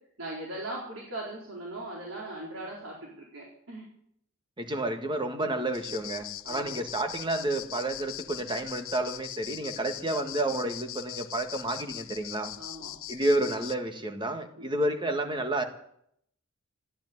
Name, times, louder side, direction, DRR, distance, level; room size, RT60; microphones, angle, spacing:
voice 1, 0.2-3.8 6.4-6.8 12.6-12.9 14.6-14.7, right 2 dB, 75° right, -4 dB, 4.4 m, -39 dB
voice 2, 4.6-12.5 13.1-15.6, right 1 dB, 25° right, 6 dB, 1.7 m, -30 dB
sound 1, 5.7-13.8, left 14 dB, 75° left, 0.7 m, -41 dB
14.0 x 10.5 x 9.8 m, 0.70 s
head